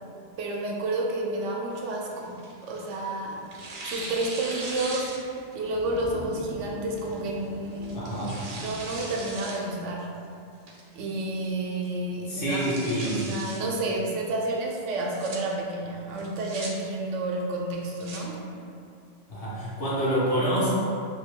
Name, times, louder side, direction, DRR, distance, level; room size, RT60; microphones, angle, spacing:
voice 1, 0.4-5.1 5.5-8.0 8.5-10.1 10.9-12.7 13.1-18.4, right 2 dB, 85° right, -1 dB, 0.9 m, -30 dB
Tearing, 1.7-3.0 3.5-5.5 6.0-6.1 7.0-7.3 7.8-9.6 10.0-10.1 10.7-11.1 11.4-11.5 11.8-11.9 12.3-13.6 14.9-15.4 16.2-16.7 17.7-18.2, right 2 dB, 55° right, 0.6 m, -39 dB
Thunder / Rain, 2.8-9.3, left 1 dB, 30° left, 0.5 m, -44 dB
voice 2, 7.9-8.4 12.3-13.2 19.3-20.7, right 1 dB, 55° left, -7 dB, 1.1 m, -27 dB
2.8 x 2.7 x 3.6 m, 2.4 s
omnidirectional pair, 1.2 m